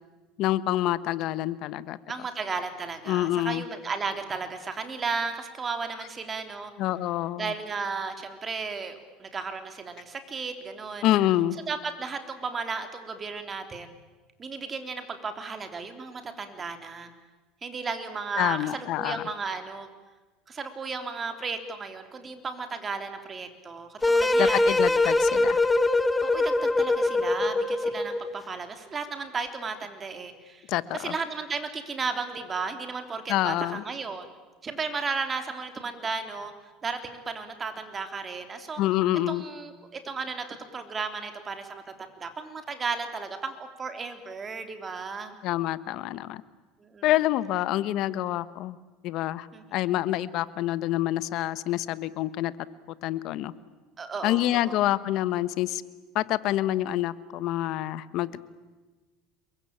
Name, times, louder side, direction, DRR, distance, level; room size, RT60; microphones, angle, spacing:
voice 1, 0.4-2.0 3.1-3.6 6.8-7.5 11.0-11.6 18.4-19.2 24.4-25.6 30.7-31.1 33.3-33.8 38.8-39.4 45.4-46.4 47.0-48.8 49.0-52.5 53.0-53.5 54.2-55.8 56.1-58.4, left 14 dB, 55° left, 16 dB, 1.3 m, -27 dB
voice 2, 2.1-6.7 7.4-11.1 11.7-13.9 14.4-17.1 17.6-19.9 20.5-24.8 26.2-34.3 34.6-36.5 36.8-38.8 39.3-45.3 46.8-47.1 49.5-49.9 54.0-54.8, right 4 dB, 25° right, 7 dB, 3.5 m, -34 dB
sound 1, 24.0-28.3, left 2 dB, 10° left, 1.2 m, -23 dB
28.0 x 22.5 x 8.9 m, 1.3 s
supercardioid pair, 125°, 0 cm